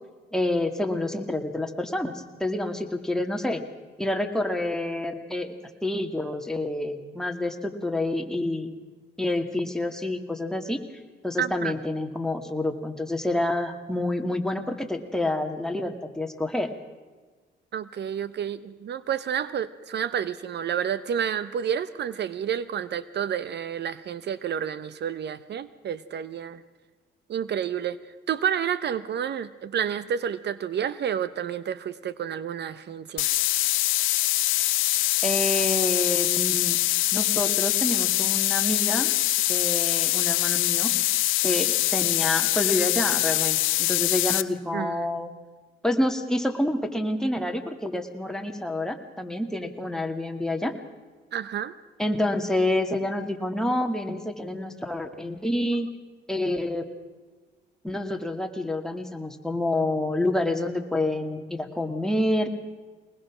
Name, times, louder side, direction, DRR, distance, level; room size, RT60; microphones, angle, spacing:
voice 1, 0.3-3.6 4.0-5.5 5.8-8.7 9.2-10.8 11.2-16.7 35.2-36.8 37.1-39.1 39.5-40.9 41.4-45.3 45.8-50.7 52.0-55.9 56.3-56.8 57.8-62.5, left 1 dB, 5° left, 4 dB, 2.2 m, -28 dB
voice 2, 11.4-11.7 17.7-26.6 27.3-28.0 28.3-33.3 44.7-45.1 51.3-51.7, right 8 dB, 60° right, 15 dB, 0.8 m, -30 dB
sound 1, 33.2-44.4, left 16 dB, 90° left, 0.7 m, -24 dB
22.5 x 19.5 x 6.1 m, 1.4 s
cardioid pair, 90°, 20 cm